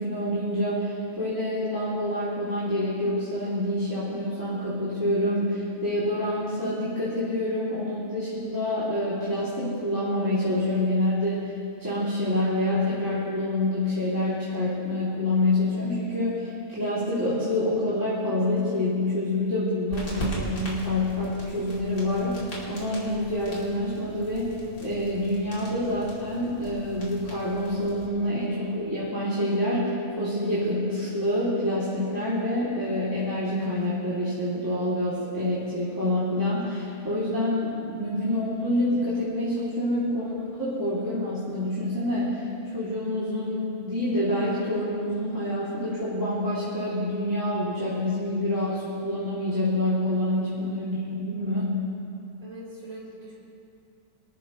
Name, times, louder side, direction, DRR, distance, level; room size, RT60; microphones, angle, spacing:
voice 1, 0.0-11.5 11.8-42.5 42.7-51.8, left 1 dB, 15° right, -11 dB, 2.7 m, -27 dB
sound 1, 19.9-28.1, equal, 90° left, 3.5 m, -40 dB
voice 2, 52.4-53.3, right 1 dB, 70° right, -7 dB, 4.8 m, -42 dB
24.5 x 13.0 x 3.1 m, 2.6 s
omnidirectional pair, 1.5 m